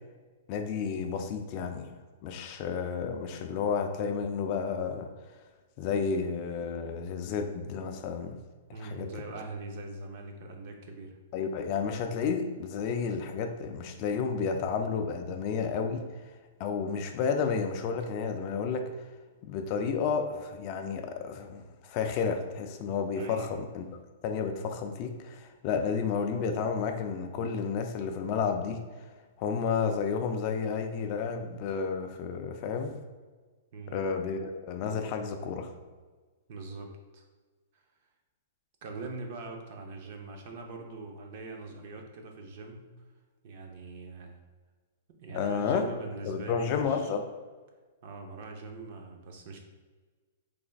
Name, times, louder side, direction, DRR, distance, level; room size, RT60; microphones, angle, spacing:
voice 1, 0.5-1.9 2.2-5.1 5.8-8.4 8.8-9.1 11.3-16.1 16.6-18.9 19.4-23.8 24.2-28.8 29.4-33.0 33.9-35.7 45.3-45.9 46.3-47.2, left 6 dB, 30° left, 5 dB, 0.3 m, -31 dB
voice 2, 8.7-11.2 23.2-23.5 33.7-34.0 36.5-37.2 37.7-37.8 38.8-42.9 43.4-44.4 45.2-47.1 48.0-49.6, right 3 dB, 45° right, 3 dB, 0.6 m, -42 dB
4.9 x 3.3 x 2.3 m, 1.4 s
hypercardioid pair, 165°, 0 cm